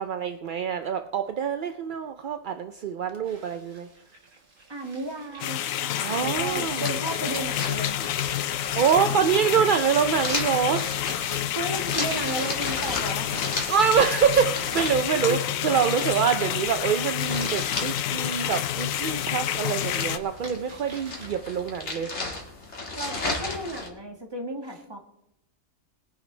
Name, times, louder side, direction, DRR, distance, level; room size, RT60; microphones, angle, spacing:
voice 1, 0.0-3.9 6.0-6.9 8.8-10.9 13.7-22.1, right 7 dB, 55° right, 8 dB, 0.6 m, -25 dB
sound 1, 3.2-21.3, right 2 dB, 70° right, 3.3 m, -49 dB
voice 2, 4.7-8.6 11.5-13.5 15.3-15.4 23.0-25.0, right 1 dB, 20° right, 2 dB, 1.5 m, -34 dB
sound 2, 5.4-20.2, left 11 dB, 80° left, 1.0 m, -29 dB
sound 3, 6.2-23.9, left 2 dB, 55° left, 2.3 m, -36 dB
21.0 x 9.9 x 3.2 m, 0.82 s
omnidirectional pair, 1.4 m